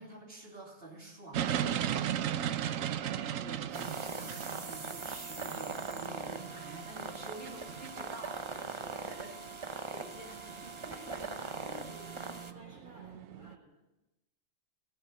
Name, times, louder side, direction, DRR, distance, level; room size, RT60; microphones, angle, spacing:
voice 1, 0.0-1.8 3.3-9.3 9.7-11.0, right 2 dB, 50° right, -1 dB, 3.4 m, -48 dB
sound 1, 1.3-13.6, right 10 dB, 90° right, 1.1 m, -38 dB
voice 2, 2.0-2.6 8.8-9.6 10.9-13.8, equal, 40° left, -3 dB, 7.4 m, -53 dB
sound 2, 3.7-12.5, right 4 dB, 30° right, 0.7 m, -41 dB
15.0 x 10.5 x 8.0 m, 0.99 s
omnidirectional pair, 1.3 m